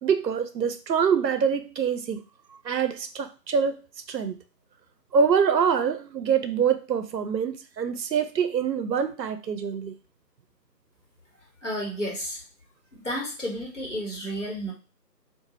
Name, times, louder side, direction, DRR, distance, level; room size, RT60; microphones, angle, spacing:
voice 1, 0.0-2.2 2.6-3.8 4.1-4.4 5.1-9.9, right 6 dB, 85° right, 0.6 m, -25 dB
voice 2, 11.6-12.4 12.9-14.7, equal, 45° left, 1.3 m, -32 dB
2.7 x 2.5 x 3.7 m
figure-of-eight pair, 170°, 49 cm